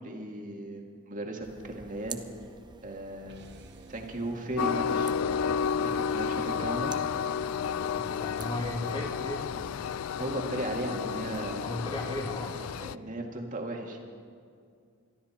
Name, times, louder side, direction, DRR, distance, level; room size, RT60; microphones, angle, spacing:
voice 1, 0.0-2.2 2.8-3.4 3.9-5.5 5.8-6.9 10.2-11.6 12.8-14.0, right 1 dB, 40° right, 1 dB, 2.0 m, -36 dB
sound 1, 1.4-10.0, right 4 dB, 20° right, 0.7 m, -49 dB
sound 2, 3.3-9.7, right 1 dB, 55° right, 1.0 m, -54 dB
Train, 4.6-12.9, left 7 dB, 75° left, 0.3 m, -31 dB
voice 2, 7.9-9.8 11.6-12.6, left 1 dB, 25° left, 0 dB, 2.3 m, -36 dB
22.5 x 14.0 x 4.4 m, 2.2 s
head